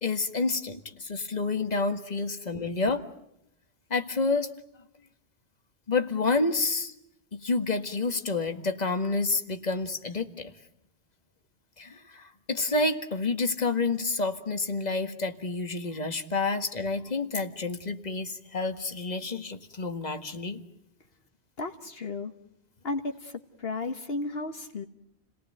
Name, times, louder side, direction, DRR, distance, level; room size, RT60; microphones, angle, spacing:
voice 1, 0.0-3.0 3.9-4.5 5.9-6.9 7.3-10.5 11.8-20.6, left 3 dB, 40° left, 7 dB, 1.9 m, -29 dB
voice 2, 21.6-22.3 22.8-24.8, left 3 dB, 70° left, 6 dB, 1.6 m, -34 dB
29.5 x 19.0 x 9.2 m, 0.81 s
omnidirectional pair, 1.1 m